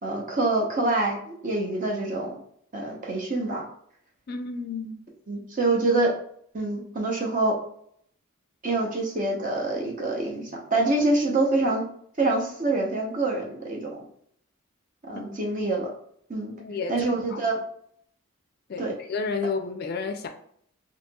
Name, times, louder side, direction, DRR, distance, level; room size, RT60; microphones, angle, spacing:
voice 1, 0.0-2.4 2.7-3.6 5.3-6.1 6.5-7.6 8.6-11.8 12.2-14.0 15.1-15.9 16.3-16.5 16.9-17.6 18.8-18.9, right 2 dB, 35° right, 0.7 m, -26 dB
voice 2, 4.3-5.0 15.1-15.2 16.6-17.4 18.7-20.3, left 4 dB, 45° left, 0.4 m, -31 dB
4.2 x 2.8 x 2.3 m
head